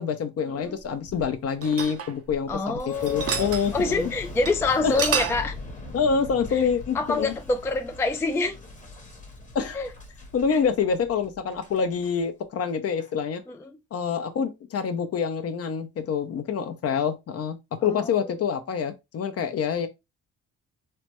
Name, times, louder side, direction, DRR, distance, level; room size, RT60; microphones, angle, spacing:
voice 1, 0.0-4.1 4.8-4.9 5.9-7.3 9.5-9.8 10.3-13.4 13.9-19.9, left 6 dB, 50° left, 0.6 m, -26 dB
sound 1, 0.8-2.8 3.1-3.7 4.0-4.1 4.5-4.6 4.8-5.5, right 7 dB, 50° right, 0.5 m, -29 dB
voice 2, 2.5-5.5 6.9-8.6 9.7-9.9 10.5-10.6 13.5-13.7 17.8-18.1, left 3 dB, 10° left, 0.3 m, -26 dB
Boom, 2.8-12.1 12.7-13.1, left 2 dB, 25° left, 1.1 m, -40 dB
3.2 x 2.1 x 2.9 m
cardioid pair, 90°, 30 cm